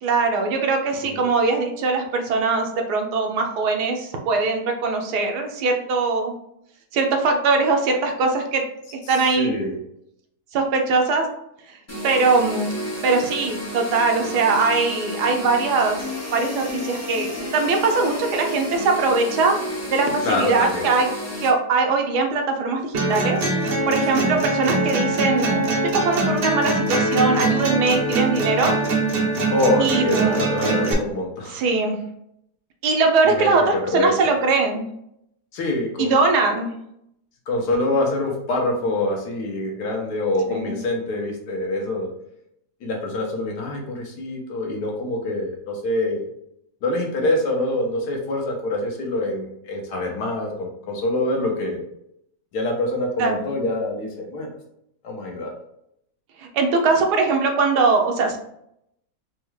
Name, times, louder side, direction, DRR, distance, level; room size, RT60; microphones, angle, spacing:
voice 1, 0.0-6.3 6.9-8.6 9.1-9.6 10.5-11.3 11.7-11.8 12.0-12.7 13.0-16.0 16.3-19.6 19.9-21.1 21.4-28.8 29.8-30.4 31.5-32.0 32.8-34.9 36.0-36.7 40.5-40.8 53.2-53.5 56.4-58.4, right 4 dB, 80° right, 3 dB, 1.2 m, -21 dB
voice 2, 9.4-9.8 20.2-20.9 24.1-24.4 29.5-31.6 33.2-34.1 35.5-36.1 37.5-42.1 42.8-46.2 46.8-51.8 52.5-54.5 55.0-55.5, left 1 dB, 75° left, 1 dB, 1.4 m, -25 dB
sound 1, 11.9-21.5, left 1 dB, 25° left, 0.3 m, -32 dB
sound 2, 22.9-30.9, right 2 dB, 60° right, 0.6 m, -22 dB
4.3 x 2.3 x 3.1 m, 0.76 s
omnidirectional pair, 1.8 m